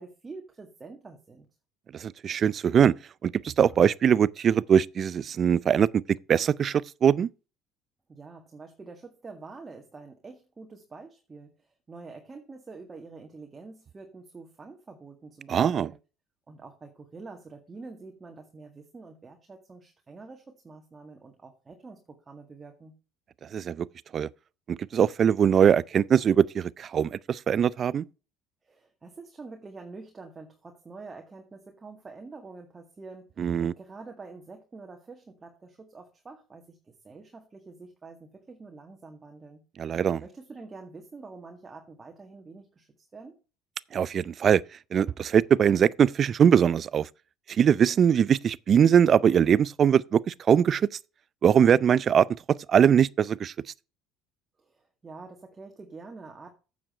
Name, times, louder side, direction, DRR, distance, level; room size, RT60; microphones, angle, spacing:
voice 1, 0.0-1.5 8.1-16.0 16.5-22.9 28.6-39.6 40.2-43.4 54.6-56.5, right 3 dB, 25° right, 1.9 m, -46 dB
voice 2, 1.9-3.0 3.2-6.0 6.3-7.3 15.5-15.9 23.5-23.9 24.1-24.3 24.7-28.0 33.4-33.7 39.8-40.2 43.9-44.6 44.9-47.1 47.5-50.9 51.4-52.3 52.7-53.5, right 8 dB, 45° right, 0.4 m, -22 dB
8.8 x 7.2 x 4.3 m
hypercardioid pair, 80°, 0 cm